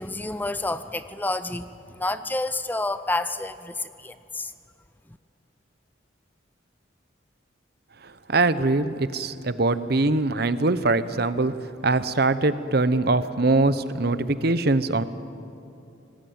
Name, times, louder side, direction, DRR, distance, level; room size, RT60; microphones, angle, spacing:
voice 1, 0.0-4.5, left 2 dB, 10° left, 12 dB, 0.5 m, -29 dB
voice 2, 8.0-11.6 11.8-15.0, right 2 dB, 55° right, 13 dB, 0.9 m, -22 dB
26.0 x 19.5 x 8.8 m, 2.8 s
head